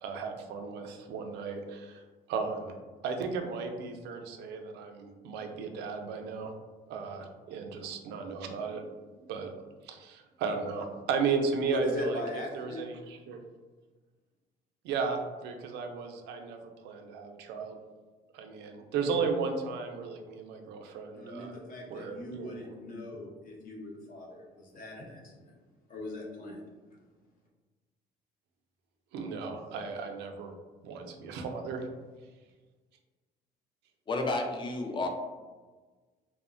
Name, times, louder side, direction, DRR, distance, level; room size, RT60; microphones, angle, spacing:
voice 1, 0.0-2.7 3.0-6.5 6.9-8.8 9.3-9.5 9.8-12.2 12.5-13.4 14.8-17.8 18.3-21.6 21.9-22.7 29.1-30.5 30.8-31.9, right 5 dB, 85° right, 5 dB, 0.4 m, -35 dB
voice 2, 11.7-12.8 21.1-25.5 25.9-26.6, left 1 dB, 55° left, -1 dB, 0.7 m, -39 dB
voice 3, 34.1-35.1, left 2 dB, 30° left, 3 dB, 0.4 m, -31 dB
2.9 x 2.0 x 2.5 m, 1.3 s
cardioid pair, 110°, 17 cm